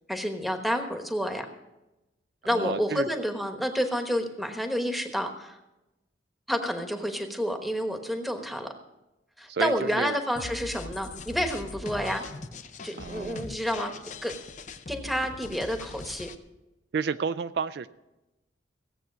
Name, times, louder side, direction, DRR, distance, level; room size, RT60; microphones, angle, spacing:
voice 1, 0.1-1.5 2.4-5.6 6.5-8.7 9.4-12.2 12.8-13.9 14.2-14.3 14.9-16.3, equal, ahead, 5 dB, 1.1 m, -29 dB
voice 2, 2.5-3.1 9.5-10.2 13.0-13.4 16.9-17.9, right 5 dB, 60° right, 12 dB, 0.4 m, -30 dB
sound 1, 10.4-16.4, left 3 dB, 40° left, 0.6 m, -41 dB
16.5 x 8.0 x 6.0 m, 0.97 s
head